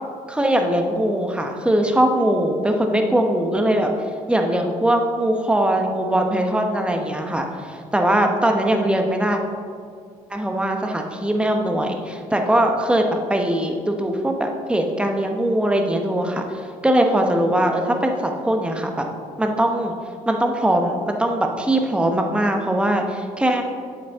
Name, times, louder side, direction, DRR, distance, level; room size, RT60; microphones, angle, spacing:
voice 1, 0.3-3.9 4.3-9.4 10.3-19.1 19.4-19.9 20.3-23.6, right 1 dB, 10° right, 3 dB, 0.9 m, -21 dB
8.3 x 8.0 x 3.6 m, 2.2 s
cardioid pair, 105°, 14 cm